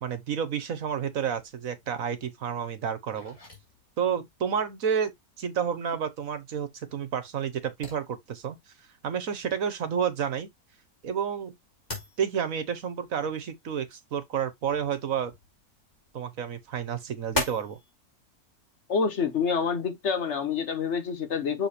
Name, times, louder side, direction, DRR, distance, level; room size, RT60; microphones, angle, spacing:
voice 1, 0.0-3.4 4.0-5.1 5.4-8.6 9.0-10.5 11.0-11.5 12.2-15.3 16.1-17.8, right 7 dB, 65° right, 1.4 m, -30 dB
sound 1, 1.3-17.9, left 2 dB, 25° left, 3.1 m, -42 dB
voice 2, 18.9-21.7, left 6 dB, 50° left, 1.2 m, -27 dB
6.8 x 3.3 x 4.3 m
omnidirectional pair, 1.6 m